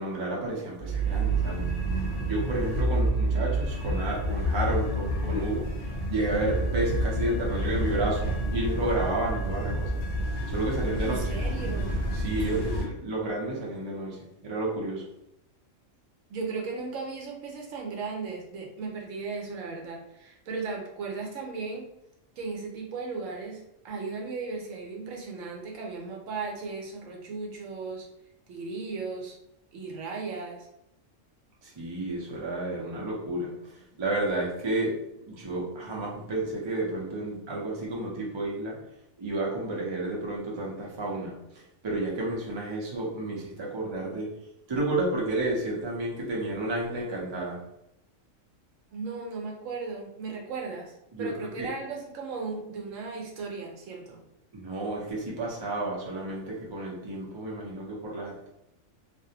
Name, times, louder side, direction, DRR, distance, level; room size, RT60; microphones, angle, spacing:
voice 1, 0.0-1.7 2.3-5.7 6.1-9.9 10.5-11.4 12.1-14.2 14.4-15.0 31.6-35.0 35.3-38.8 39.2-41.3 41.8-44.3 44.7-47.6 51.1-51.7 54.5-58.5, right 2 dB, 45° right, -3 dB, 0.3 m, -31 dB
sound 1, 0.8-12.9, right 1 dB, 50° left, 0.7 m, -29 dB
voice 2, 11.0-12.1 16.3-21.9 22.4-28.1 28.5-29.4 29.7-30.7 48.9-54.2, right 4 dB, 80° right, 0 dB, 1.0 m, -36 dB
2.5 x 2.0 x 2.7 m, 0.83 s
omnidirectional pair, 1.4 m